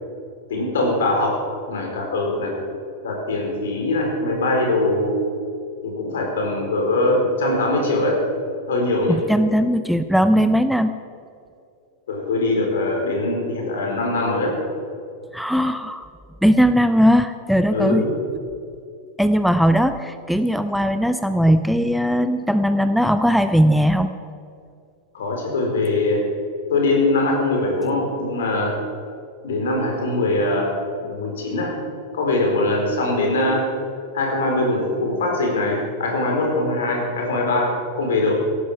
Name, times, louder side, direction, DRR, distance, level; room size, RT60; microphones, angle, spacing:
voice 1, 0.5-1.4 1.7-2.6 3.0-5.2 5.8-8.2 8.7-9.2 12.1-14.6 17.7-18.2 25.1-26.2 26.7-28.8 29.4-31.7 32.1-33.7 34.1-38.3, left 2 dB, 60° left, 1 dB, 4.4 m, -22 dB
voice 2, 9.1-11.0 15.3-16.1 16.4-18.0 19.2-24.1, equal, ahead, 10 dB, 0.6 m, -18 dB
17.5 x 14.5 x 5.0 m, 2.5 s
figure-of-eight pair, 90°, 0 cm